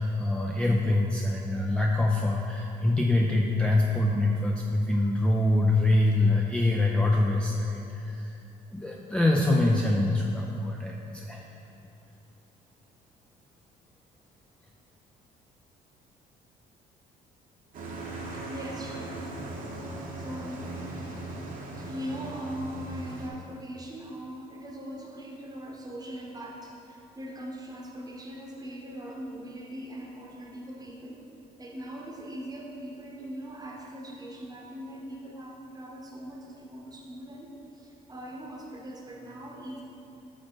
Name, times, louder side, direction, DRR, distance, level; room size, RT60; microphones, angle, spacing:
voice 1, 0.0-8.4 8.7-11.6, left 2 dB, 5° left, -1 dB, 0.4 m, -25 dB
sound 1, 17.7-23.3, right 2 dB, 50° right, 1.1 m, -38 dB
voice 2, 18.3-19.3 20.2-20.7 21.8-31.3 31.6-39.8, right 1 dB, 20° right, -1 dB, 1.0 m, -40 dB
5.8 x 5.1 x 4.4 m, 2.8 s
cardioid pair, 110°, 17 cm